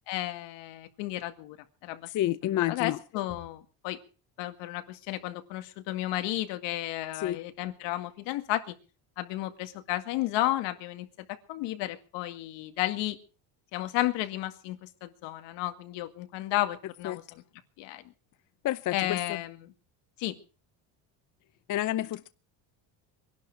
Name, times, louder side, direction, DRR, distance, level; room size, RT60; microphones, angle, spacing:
voice 1, 0.1-1.6 1.8-2.1 2.5-4.0 4.4-8.7 9.2-13.2 13.7-17.4 17.8-18.0 18.9-19.7 20.2-20.4, left 15 dB, 80° left, 2.1 m, -33 dB
voice 2, 2.1-3.0 7.1-7.4 17.0-17.2 18.6-19.4 21.7-22.3, left 13 dB, 45° left, 0.7 m, -29 dB
23.0 x 11.5 x 4.7 m
cardioid pair, 120°, 42 cm